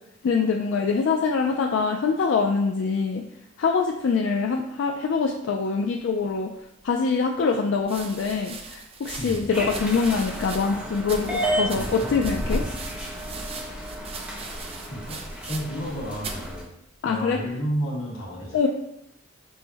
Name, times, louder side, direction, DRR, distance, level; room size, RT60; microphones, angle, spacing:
voice 1, 0.2-3.2 3.6-6.5 6.8-12.6 17.0-17.4 18.5-18.7, left 5 dB, 60° left, 2 dB, 0.3 m, -24 dB
sound 1, 7.8-15.9 16.2-16.5 17.3-17.7, right 4 dB, 30° right, 0.4 m, -40 dB
voice 2, 9.2-9.5 14.9-15.2 15.5-16.7 17.0-18.7, equal, 85° left, -5 dB, 1.4 m, -31 dB
sound 2, 9.5-16.6, equal, 5° right, 0.7 m, -31 dB
6.0 x 2.1 x 3.3 m, 0.81 s
head